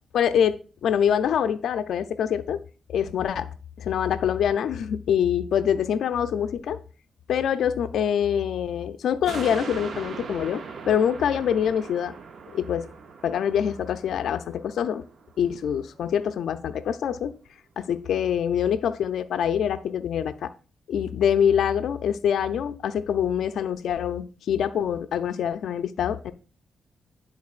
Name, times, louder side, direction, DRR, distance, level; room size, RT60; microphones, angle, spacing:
voice 1, 0.1-2.6 2.9-3.5 3.8-6.8 7.3-12.1 12.5-12.9 13.2-15.0 15.4-17.3 17.8-20.5 20.9-26.3, left 8 dB, 80° left, 0.4 m, -25 dB
sound 1, 9.3-15.9 16.3-16.4, right 5 dB, 65° right, 0.6 m, -40 dB
10.5 x 3.8 x 2.4 m
cardioid pair, 65°, 0 cm